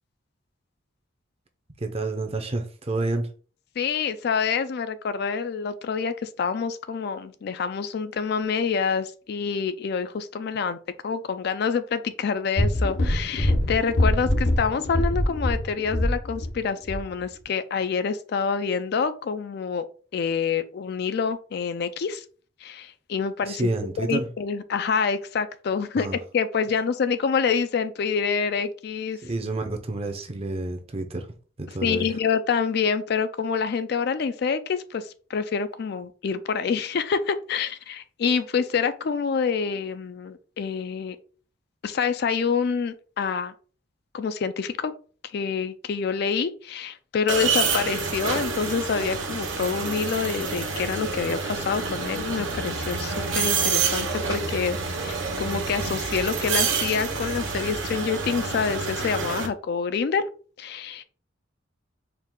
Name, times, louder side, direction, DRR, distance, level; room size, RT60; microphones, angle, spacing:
voice 1, 1.8-3.3 23.5-24.3 26.0-26.2 29.2-31.3 31.6-32.1, right 2 dB, 30° right, 0.6 m, -29 dB
voice 2, 3.8-10.8 11.0-19.9 20.1-22.2 22.6-23.7 24.0-26.1 26.3-29.2 31.8-41.2 41.8-43.5 44.1-44.9 45.3-54.8 55.0-60.3 60.6-61.0, left 6 dB, 55° left, 0.4 m, -27 dB
sound 1, 12.6-16.6 16.9-17.0, left 1 dB, 80° left, 1.0 m, -24 dB
sound 2, 47.3-59.5, right 5 dB, 85° right, 0.8 m, -28 dB
4.5 x 2.4 x 3.6 m
head